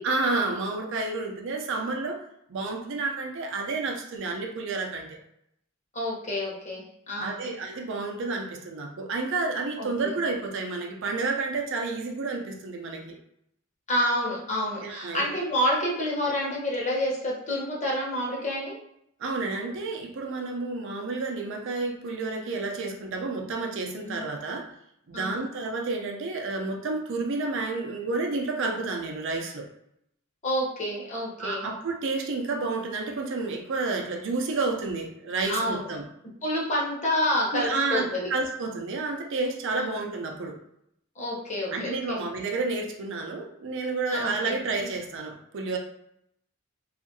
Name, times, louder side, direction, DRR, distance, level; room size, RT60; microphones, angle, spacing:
voice 1, 0.0-2.2 2.5-5.2 7.1-13.2 14.8-15.3 19.2-24.7 25.1-29.7 31.4-36.0 37.5-40.6 41.7-45.8, right 3 dB, 60° right, 2 dB, 0.5 m, -30 dB
voice 2, 5.9-7.5 9.8-10.1 13.9-18.8 24.1-24.2 25.1-25.4 30.4-31.7 35.5-35.9 36.4-38.3 39.8-40.0 41.2-42.2 44.1-44.6, left 1 dB, 35° left, -4 dB, 0.8 m, -28 dB
2.6 x 2.4 x 2.6 m, 0.76 s
head